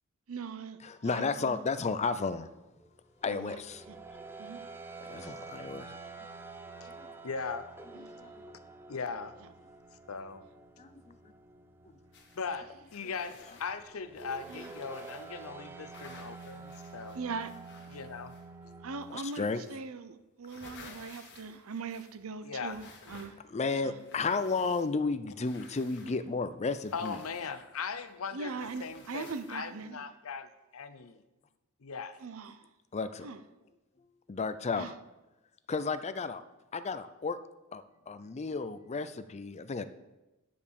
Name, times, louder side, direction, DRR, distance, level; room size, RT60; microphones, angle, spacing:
voice 1, 0.3-1.6 3.3-3.6 3.9-4.0 4.4-4.6 7.9-8.1 14.5-14.7 17.1-17.5 18.8-23.4 23.8-24.0 28.3-30.0 32.2-32.6 33.2-33.4 34.8-34.9, right 4 dB, 70° right, 0.6 m, -41 dB
voice 2, 0.8-2.5 3.2-3.8 5.0-5.9 7.0-7.2 8.2-8.4 10.8-11.2 18.7-18.8 19.1-19.6 23.5-27.2 32.9-33.3 34.3-34.9 35.7-36.4 36.7-37.4 37.7-39.8, left 4 dB, 30° left, 0.5 m, -33 dB
sound 1, 2.7-19.1, right 3 dB, 10° right, 0.6 m, -49 dB
voice 3, 7.2-7.7 8.9-9.4 10.1-10.4 12.4-17.2 17.9-18.3 22.4-22.8 26.9-31.2 31.8-32.2, left 5 dB, 75° left, 0.7 m, -39 dB
sound 2, 12.1-12.4 12.8-15.5 15.9-18.6 19.0-19.9 20.2-22.3 22.6-23.6 23.9-25.1 25.4-26.2 26.8-28.1 28.6-29.9, left 4 dB, 55° left, 1.5 m, -55 dB
9.6 x 5.2 x 6.9 m
head